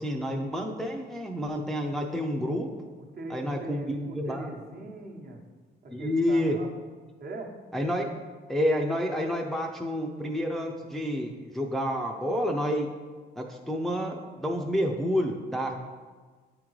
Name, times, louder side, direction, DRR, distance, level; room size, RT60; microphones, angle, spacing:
voice 1, 0.0-2.7 3.3-4.5 5.9-6.6 7.7-8.1 8.5-12.9 13.4-15.7, equal, ahead, 1 dB, 0.5 m, -29 dB
voice 2, 3.0-5.4 5.8-6.7 7.2-7.5, right 2 dB, 50° right, 0 dB, 1.0 m, -41 dB
8.3 x 3.7 x 3.1 m, 1.5 s
cardioid pair, 90°, 20 cm